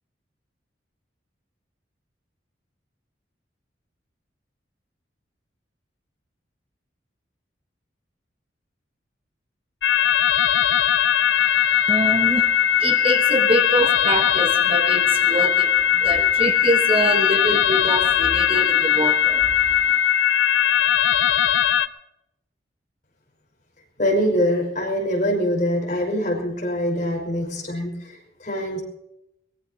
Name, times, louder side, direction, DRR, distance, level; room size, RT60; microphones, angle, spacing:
sound 1, 9.8-21.9, left 9 dB, 80° left, 0.7 m, -19 dB
voice 1, 11.9-12.4 12.8-19.4, right 1 dB, 30° right, 4 dB, 1.4 m, -25 dB
voice 2, 24.0-28.8, equal, 45° left, -1 dB, 5.7 m, -24 dB
23.0 x 20.5 x 2.9 m, 0.81 s
head